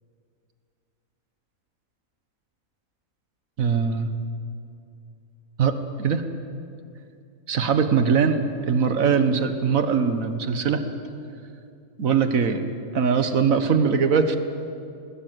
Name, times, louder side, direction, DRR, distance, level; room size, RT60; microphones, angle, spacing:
voice 1, 3.6-4.1 5.6-6.2 7.5-10.8 12.0-12.6 12.9-14.4, right 6 dB, 65° right, 8 dB, 1.7 m, -21 dB
20.5 x 20.5 x 7.7 m, 2.5 s
omnidirectional pair, 1.5 m